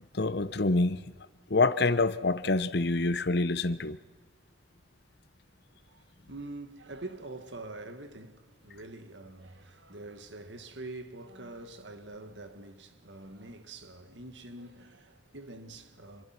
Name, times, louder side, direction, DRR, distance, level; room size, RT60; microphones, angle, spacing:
voice 1, 0.1-1.1 1.5-4.0, left 3 dB, 60° left, 0.9 m, -26 dB
voice 2, 5.7-16.3, right 2 dB, 80° right, 1.9 m, -45 dB
27.0 x 23.0 x 6.0 m
head